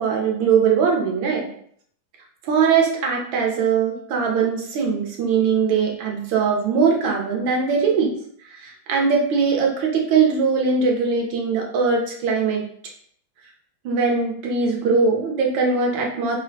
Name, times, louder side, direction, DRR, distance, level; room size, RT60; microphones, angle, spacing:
voice 1, 0.0-1.5 2.4-8.1 8.5-12.6 13.8-16.4, right 5 dB, 90° right, 0 dB, 1.4 m, -21 dB
3.5 x 2.0 x 2.6 m, 0.63 s
omnidirectional pair, 2.0 m